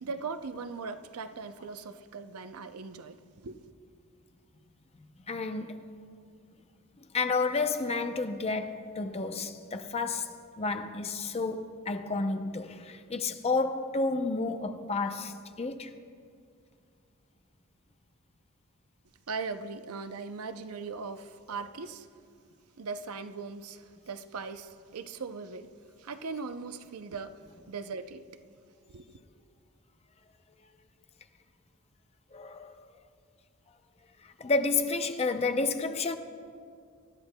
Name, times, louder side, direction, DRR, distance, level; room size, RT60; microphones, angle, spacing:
voice 1, 0.0-3.6 19.3-22.1 22.8-25.7 26.0-27.4 27.7-28.3 28.9-29.2, right 4 dB, 90° right, 0.6 m, -39 dB
voice 2, 5.0-5.8 7.1-15.9 32.3-32.9 34.4-36.2, left 3 dB, 30° left, 0.6 m, -31 dB
25.0 x 11.5 x 2.2 m
head